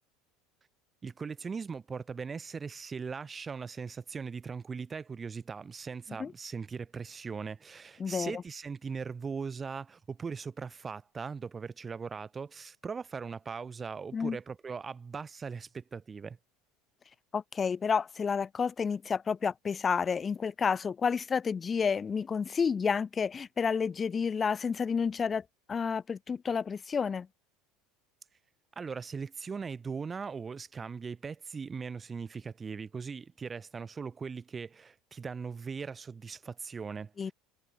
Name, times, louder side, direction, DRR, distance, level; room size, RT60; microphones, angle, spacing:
voice 1, 1.0-16.4 28.8-37.3, right 5 dB, 25° right, 6.1 m, -39 dB
voice 2, 8.0-8.4 14.1-14.4 17.3-25.4 25.7-27.3 37.2-37.3, left 6 dB, 30° left, 1.5 m, -30 dB
hypercardioid pair, 80°, 0 cm